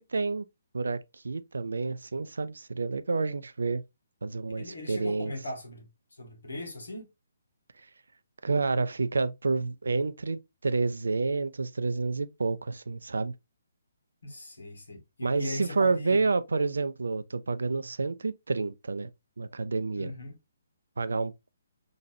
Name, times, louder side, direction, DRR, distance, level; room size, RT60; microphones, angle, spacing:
voice 1, 0.1-0.5 0.7-3.8 4.2-5.3 8.4-13.3 15.2-19.1 19.4-20.1 21.0-21.3, right 3 dB, 70° right, 0.4 m, -29 dB
voice 2, 4.6-5.9 6.2-7.1 14.2-16.2 20.0-20.4, left 1 dB, 70° left, 1.7 m, -39 dB
4.0 x 3.1 x 2.7 m
figure-of-eight pair, 135°, 0 cm